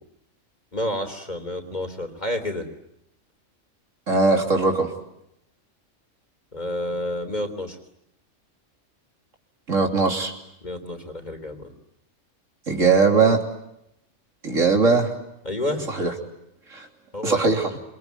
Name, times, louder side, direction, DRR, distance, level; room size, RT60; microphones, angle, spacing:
voice 1, 0.7-2.7 6.5-7.8 10.6-11.7 15.4-15.9 17.1-17.5, left 1 dB, 35° left, 6 dB, 3.8 m, -29 dB
voice 2, 4.1-4.9 9.7-10.4 12.7-13.4 14.4-15.1 15.9-16.1 16.7-16.9 17.2-17.8, right 4 dB, 80° right, 3 dB, 3.6 m, -20 dB
27.5 x 23.0 x 9.4 m, 0.80 s
omnidirectional pair, 1.3 m